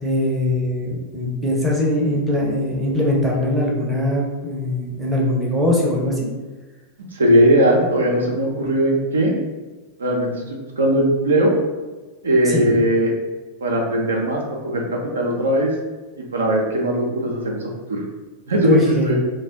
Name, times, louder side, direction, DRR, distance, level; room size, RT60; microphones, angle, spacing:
voice 1, 0.0-6.2 12.5-12.7 18.6-19.2, left 1 dB, 5° right, -4 dB, 0.6 m, -21 dB
voice 2, 7.1-9.4 10.0-11.6 12.2-13.1 13.6-15.7 16.3-17.6 17.9-18.0 18.5-18.8 19.1-19.2, right 1 dB, 70° right, -1 dB, 0.4 m, -19 dB
2.4 x 2.1 x 3.4 m, 1.2 s
figure-of-eight pair, 90°, 0 cm